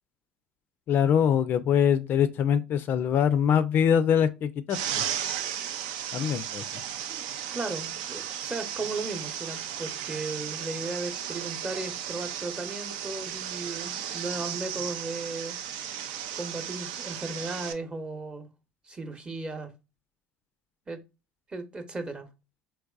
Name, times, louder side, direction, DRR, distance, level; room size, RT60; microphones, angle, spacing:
voice 1, 0.9-5.0 6.1-6.6, left 8 dB, 50° left, 0.4 m, -23 dB
sound 1, 4.7-17.7, right 9 dB, 75° right, 0.4 m, -35 dB
voice 2, 7.5-15.6 16.4-18.5 18.9-19.7 20.9-21.0 21.5-22.3, right 3 dB, 20° right, 0.8 m, -36 dB
3.4 x 3.0 x 2.3 m
hypercardioid pair, 70°, 4 cm